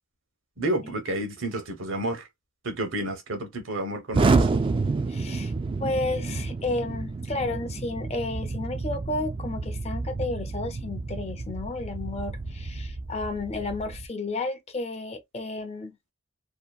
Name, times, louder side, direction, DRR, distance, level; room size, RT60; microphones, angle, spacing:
voice 1, 0.6-2.3 2.6-4.5, right 1 dB, 75° right, 0.9 m, -30 dB
Explosion, 4.1-14.1, right 3 dB, 25° right, 0.3 m, -29 dB
voice 2, 5.1-5.5 5.8-16.0, left 2 dB, 35° left, 0.6 m, -32 dB
2.8 x 2.4 x 2.3 m
head